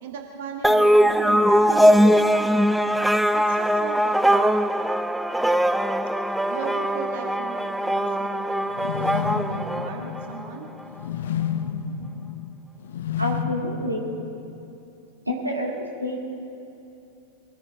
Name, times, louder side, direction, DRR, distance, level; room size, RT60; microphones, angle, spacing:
voice 1, 0.0-2.5 3.3-4.9 6.5-10.7, right 5 dB, 55° right, 2 dB, 1.6 m, -37 dB
sound 1, 0.6-10.4, equal, 5° right, 0.4 m, -21 dB
sound 2, 8.7-14.8, left 8 dB, 60° left, 0.7 m, -31 dB
voice 2, 13.2-14.0 15.3-16.2, left 1 dB, 85° right, -1 dB, 2.0 m, -28 dB
23.0 x 15.5 x 3.6 m, 2.8 s
figure-of-eight pair, 90°, 0 cm